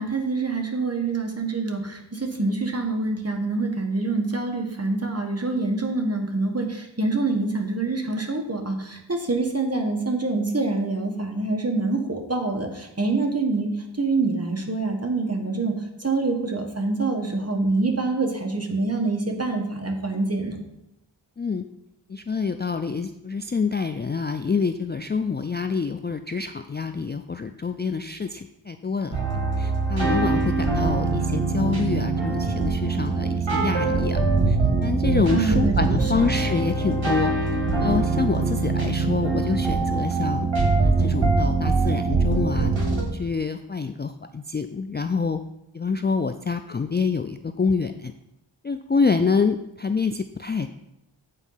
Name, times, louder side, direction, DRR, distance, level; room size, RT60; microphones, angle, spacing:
voice 1, 0.0-13.7 14.0-20.6 35.3-36.0, right 3 dB, 30° right, 3 dB, 1.4 m, -26 dB
voice 2, 22.1-37.3 37.8-40.5 40.8-42.7 43.1-45.4 45.7-48.1 48.6-50.8, left 5 dB, 25° left, 8 dB, 0.3 m, -27 dB
sound 1, 29.1-43.0, right 3 dB, 80° right, 1.7 m, -23 dB
8.3 x 4.4 x 5.6 m, 0.85 s
wide cardioid pair, 50°, 46 cm